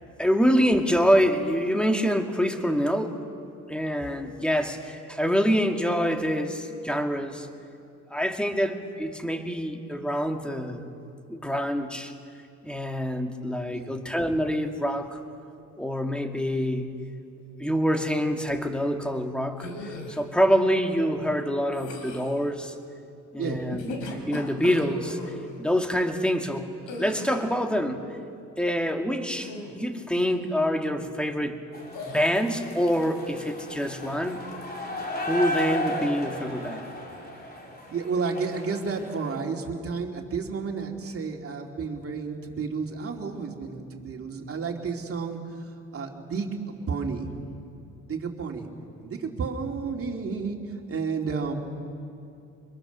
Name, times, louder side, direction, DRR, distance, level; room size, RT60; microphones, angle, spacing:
voice 1, 0.2-3.2 3.7-7.5 8.1-10.9 11.3-12.1 12.6-15.2 15.8-16.9 17.6-19.7 20.1-22.8 23.3-23.9 24.3-25.2 25.6-28.0 28.6-31.7 32.1-34.4 35.3-36.8, equal, 5° left, 4 dB, 2.0 m, -26 dB
sound 1, 19.6-20.2 21.7-22.4 23.6-25.3 26.9-27.6 29.3-29.8 30.2-30.5 31.9-32.4, left 2 dB, 85° left, 3.6 m, -38 dB
sound 2, 31.7-39.4, left 1 dB, 30° left, 3.4 m, -35 dB
voice 2, 37.9-47.3 48.1-48.7 49.0-51.5, right 5 dB, 50° right, 1 dB, 3.0 m, -31 dB
25.0 x 22.5 x 6.9 m, 2.5 s
cardioid pair, 90°, 30 cm